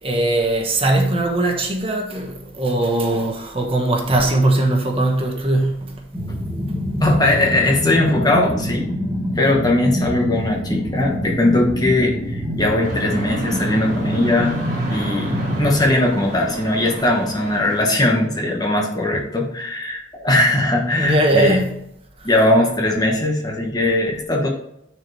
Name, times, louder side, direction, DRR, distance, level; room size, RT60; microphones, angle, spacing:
voice 1, 0.0-6.0 21.0-21.7 22.2-22.3, right 2 dB, 30° right, 1.3 m, -20 dB
sound 1, 6.1-15.9, equal, 10° right, 1.8 m, -26 dB
voice 2, 7.0-8.9 9.3-14.6 14.9-21.6 22.2-24.5, left 1 dB, 20° left, 1.3 m, -19 dB
sound 2, 12.8-17.8, right 1 dB, 50° right, 1.6 m, -30 dB
10.0 x 4.7 x 3.4 m
head